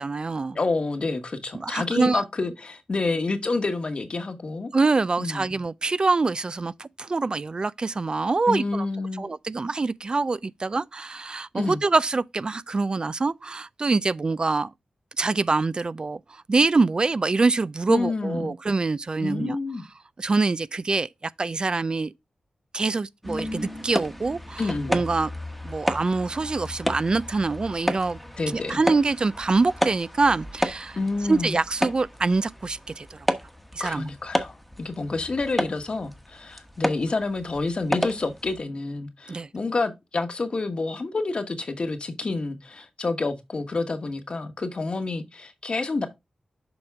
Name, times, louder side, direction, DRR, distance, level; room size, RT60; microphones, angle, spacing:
voice 1, 0.0-0.6 1.5-2.2 4.7-8.9 9.2-14.7 15.2-19.6 20.2-22.1 22.7-25.3 25.6-28.2 28.5-31.0 31.3-33.3 33.7-34.1 39.3-39.5, right 3 dB, 40° right, 0.3 m, -25 dB
voice 2, 0.5-4.7 5.2-5.5 8.5-9.3 11.5-11.8 17.9-18.5 19.2-19.8 24.6-25.0 28.4-28.8 31.0-31.6 33.8-46.1, left 3 dB, 55° left, 1.2 m, -28 dB
sound 1, 23.2-38.6, equal, ahead, 1.1 m, -32 dB
7.0 x 5.1 x 3.5 m
cardioid pair, 65°, 2 cm